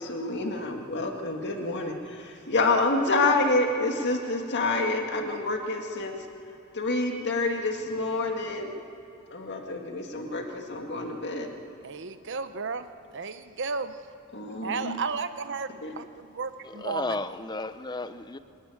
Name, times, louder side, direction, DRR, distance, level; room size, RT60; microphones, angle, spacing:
voice 1, 0.0-6.2 6.7-8.7 9.3-11.5 14.3-15.0 15.8-15.9, left 2 dB, 55° left, 2.0 m, -28 dB
voice 2, 11.8-12.9 13.1-14.0 14.6-15.7 16.0-16.1 16.4-17.2, right 5 dB, 55° right, 0.9 m, -33 dB
voice 3, 16.6-18.4, left 3 dB, 20° left, 0.7 m, -33 dB
24.5 x 12.5 x 9.8 m
head